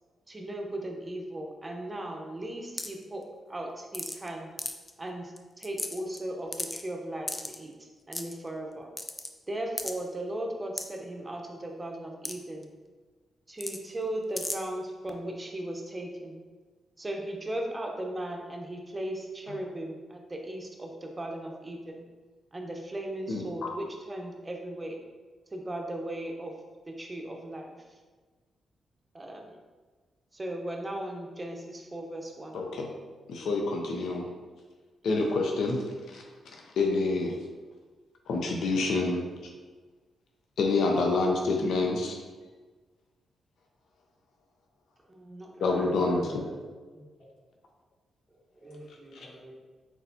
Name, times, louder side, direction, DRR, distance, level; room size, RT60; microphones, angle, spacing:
voice 1, 0.3-4.5 5.0-8.9 9.5-12.7 13.5-16.4 17.0-22.0 22.5-25.0 25.5-26.5 26.9-27.7 29.1-29.6 30.3-32.6 45.1-45.7, right 1 dB, 25° right, 2 dB, 0.8 m, -37 dB
sound 1, 2.8-3.0 3.9-4.3 4.6-4.9 5.4-5.5 5.6-6.2 6.5-6.8 7.3-7.6 8.1-8.3 9.0-9.3 9.8-9.9 10.8-10.9 12.2-12.3 12.6-12.7 13.6-13.8 14.4-14.6, left 2 dB, 25° left, 0.4 m, -34 dB
voice 2, 23.3-23.7 32.5-32.9 33.3-34.3 35.0-36.2 36.5-37.3 38.3-39.3 40.6-42.2 45.6-46.4 49.2-49.3, left 3 dB, 80° left, 1 dB, 0.5 m, -27 dB
voice 3, 45.5-46.7 46.9-47.0 48.3-49.6, equal, 5° right, -7 dB, 1.1 m, -44 dB
4.5 x 4.0 x 2.7 m, 1.4 s
cardioid pair, 70°, 0 cm